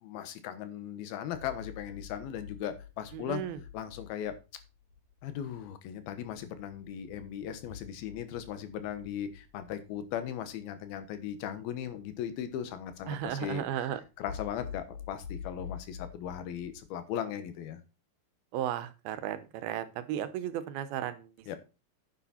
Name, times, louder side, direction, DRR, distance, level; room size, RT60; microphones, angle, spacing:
voice 1, 0.0-3.4 3.7-4.4 5.2-17.8 21.5-21.6, left 9 dB, 85° left, 10 dB, 3.1 m, -38 dB
sound 1, 1.3-16.8, left 7 dB, 50° left, 3.8 m, -48 dB
voice 2, 3.1-3.6 13.1-14.0 18.5-21.3, right 11 dB, 85° right, 13 dB, 2.8 m, -34 dB
9.8 x 7.0 x 4.2 m, 0.30 s
omnidirectional pair, 4.2 m